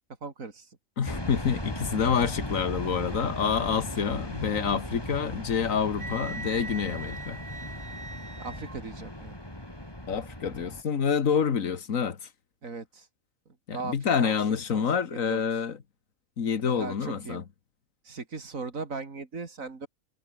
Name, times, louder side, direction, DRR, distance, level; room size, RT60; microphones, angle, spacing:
voice 1, 0.2-0.8 3.6-4.1 8.4-9.4 12.6-13.1 13.7-14.8 15.1-15.6 16.6-17.4 18.0-19.9, right 4 dB, 90° right, 3.1 m, -38 dB
voice 2, 1.0-7.4 10.1-12.3 13.7-15.8 16.4-17.4, left 6 dB, 85° left, 1.9 m, -27 dB
sound 1, 1.0-10.8, left 1 dB, 20° left, 5.1 m, -37 dB
Wind instrument woodwind instrument, 6.0-8.8, right 3 dB, 65° right, 3.7 m, -40 dB
omnidirectional pair, 1.4 m